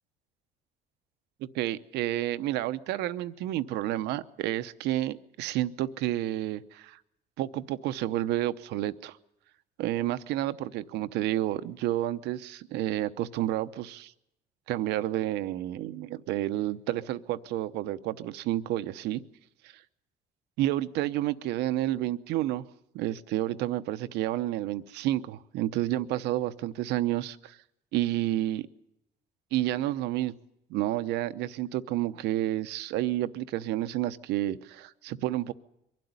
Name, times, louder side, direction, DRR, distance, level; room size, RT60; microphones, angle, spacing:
voice 1, 1.4-7.0 7.4-9.2 9.8-14.1 14.7-19.2 19.6-19.7 20.6-22.6 22.9-27.6 27.9-28.7 29.5-30.3 30.7-35.5, right 14 dB, 90° right, 0.8 m, -30 dB
23.0 x 12.0 x 9.6 m
cardioid pair, 110°, 17 cm